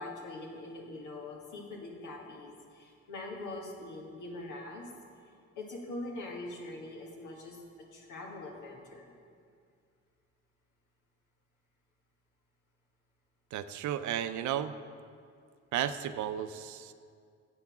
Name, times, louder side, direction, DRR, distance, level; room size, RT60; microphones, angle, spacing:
voice 1, 0.0-4.9 5.6-7.6 7.9-9.1, left 2 dB, 80° left, 0 dB, 1.7 m, -43 dB
voice 2, 13.5-14.7 15.7-16.9, right 10 dB, 75° right, 11 dB, 0.5 m, -33 dB
7.9 x 5.9 x 7.2 m, 2.2 s
cardioid pair, 90°, 30 cm